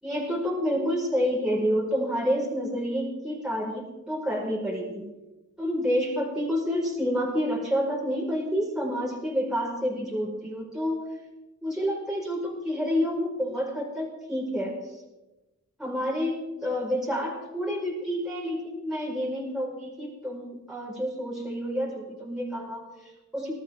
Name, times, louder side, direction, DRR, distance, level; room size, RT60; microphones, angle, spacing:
voice 1, 0.0-5.0 5.6-11.1 11.6-15.0 15.8-23.5, equal, ahead, -5 dB, 5.0 m, -29 dB
20.5 x 13.0 x 3.7 m, 1.0 s
wide cardioid pair, 55°, 32 cm